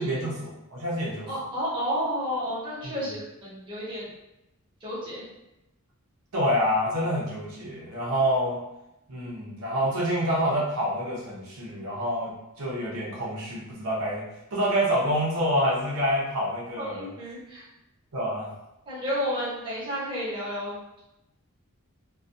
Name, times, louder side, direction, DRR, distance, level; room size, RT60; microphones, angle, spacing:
voice 1, 0.0-1.3 2.8-2.9 6.3-8.6 9.1-14.2 14.5-17.1 18.1-18.5, equal, 75° right, -5 dB, 0.7 m, -27 dB
voice 2, 1.3-4.1 4.8-5.2 16.8-17.6 18.9-21.0, equal, 20° right, -9 dB, 0.9 m, -31 dB
2.3 x 2.3 x 2.6 m, 0.89 s
head